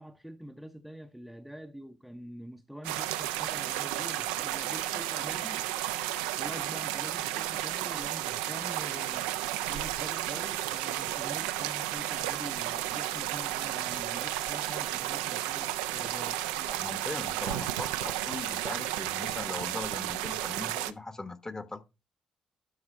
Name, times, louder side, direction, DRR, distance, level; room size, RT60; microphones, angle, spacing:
voice 1, 0.0-5.6 6.4-9.3 9.7-16.4, equal, ahead, 0.7 m, -45 dB
sound 1, 2.8-20.9, right 13 dB, 80° right, 0.4 m, -33 dB
voice 2, 16.5-21.8, left 3 dB, 25° left, 1.2 m, -40 dB
12.0 x 4.2 x 4.3 m
hypercardioid pair, 40°, 2 cm